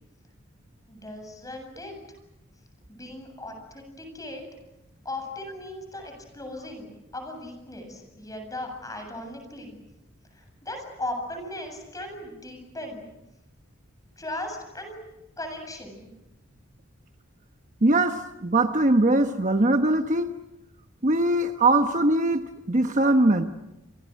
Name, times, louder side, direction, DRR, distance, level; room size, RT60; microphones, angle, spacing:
voice 1, 0.9-2.0 2.9-4.4 5.0-9.8 10.3-13.1 14.2-15.0 15.4-16.1, left 1 dB, 15° left, 5 dB, 7.7 m, -37 dB
voice 2, 17.8-20.3 21.0-23.4, right 2 dB, 40° right, 6 dB, 1.1 m, -21 dB
29.5 x 27.0 x 6.5 m, 0.93 s
head